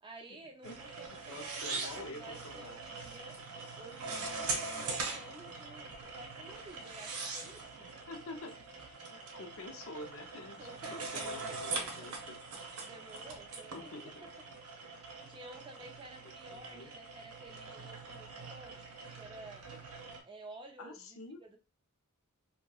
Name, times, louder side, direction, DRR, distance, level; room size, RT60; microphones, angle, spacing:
voice 1, 0.0-3.4 3.8-7.9 10.6-12.2 12.8-14.1 15.3-19.6 20.2-21.6, right 2 dB, 20° right, 3 dB, 0.4 m, -52 dB
sound 1, 0.6-20.2, right 3 dB, 80° right, 0.7 m, -42 dB
voice 2, 1.1-2.8 8.1-8.5 9.1-12.4 13.7-14.1 16.5-16.9 20.8-21.4, left 2 dB, 65° left, 4 dB, 0.6 m, -47 dB
2.8 x 2.7 x 2.3 m, 0.30 s
head